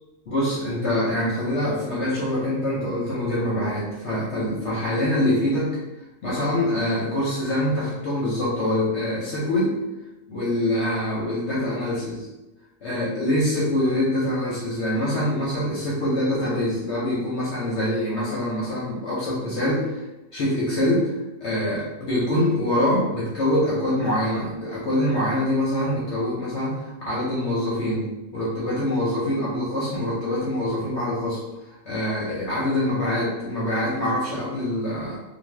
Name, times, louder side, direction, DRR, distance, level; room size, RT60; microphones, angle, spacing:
voice 1, 0.3-5.7 6.2-9.8 10.3-12.3 12.8-20.0 20.3-21.1 21.4-28.0 28.3-31.4 31.7-35.2, left 1 dB, 60° left, -6 dB, 0.8 m, -24 dB
2.5 x 2.3 x 3.2 m, 1.0 s
omnidirectional pair, 1.7 m